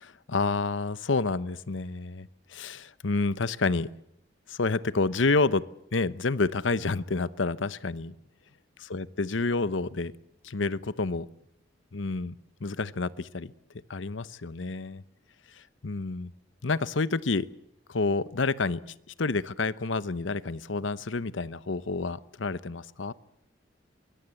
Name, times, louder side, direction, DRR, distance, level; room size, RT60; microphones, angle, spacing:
voice 1, 0.3-3.9 4.5-5.6 5.9-8.1 8.8-10.1 10.4-11.3 11.9-12.4 12.6-13.5 13.9-15.0 15.8-16.3 16.6-17.5 17.9-23.1, left 3 dB, 90° left, 16 dB, 0.9 m, -29 dB
24.0 x 21.5 x 7.8 m, 0.76 s
head